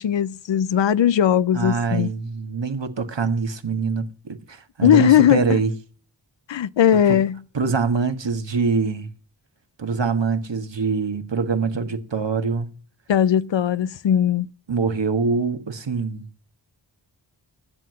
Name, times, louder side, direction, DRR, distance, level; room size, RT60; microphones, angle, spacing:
voice 1, 0.0-2.1 4.8-5.6 6.5-7.4 13.1-14.5, left 9 dB, 80° left, 0.6 m, -18 dB
voice 2, 1.5-5.7 7.1-7.2 7.5-9.1 9.8-12.7 14.7-16.3, right 5 dB, 75° right, 1.6 m, -24 dB
13.5 x 7.7 x 7.6 m
cardioid pair, 40°, 44 cm